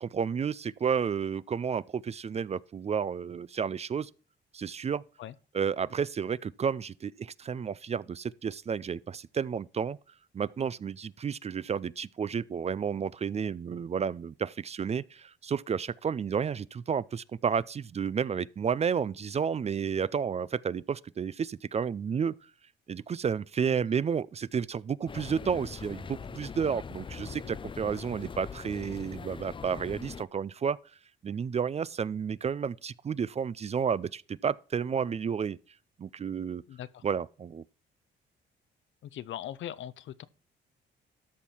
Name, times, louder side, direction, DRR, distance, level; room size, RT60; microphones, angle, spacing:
voice 1, 0.0-4.1 4.5-5.0 5.5-10.0 10.3-22.4 22.9-30.8 31.2-35.6 36.0-36.6 37.0-37.6, right 7 dB, 35° right, 0.4 m, -31 dB
sound 1, 25.1-30.2, left 6 dB, 25° left, 0.4 m, -42 dB
voice 2, 36.7-37.0 39.0-40.3, left 11 dB, 70° left, 0.8 m, -40 dB
13.0 x 5.5 x 4.4 m
cardioid pair, 90°, 20 cm